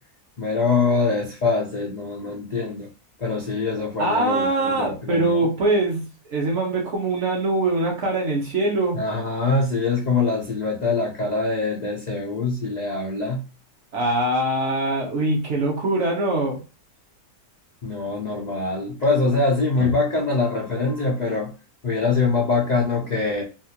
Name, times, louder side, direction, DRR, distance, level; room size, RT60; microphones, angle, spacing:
voice 1, 0.4-2.9 3.2-5.4 8.9-13.4 17.8-21.5 21.8-23.4, left 3 dB, 60° left, 0.4 m, -24 dB
voice 2, 4.0-9.0 13.9-16.6 19.8-19.9, right 2 dB, 50° right, 1.1 m, -23 dB
3.6 x 2.4 x 2.8 m
omnidirectional pair, 1.7 m